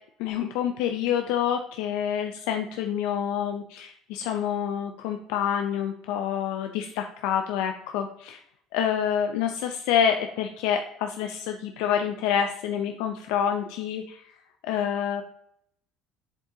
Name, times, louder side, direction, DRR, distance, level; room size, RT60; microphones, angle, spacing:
voice 1, 0.2-8.4 8.7-14.2 14.6-15.2, left 9 dB, 80° left, 5 dB, 0.6 m, -27 dB
7.4 x 7.4 x 2.8 m, 0.72 s
cardioid pair, 180°, 0 cm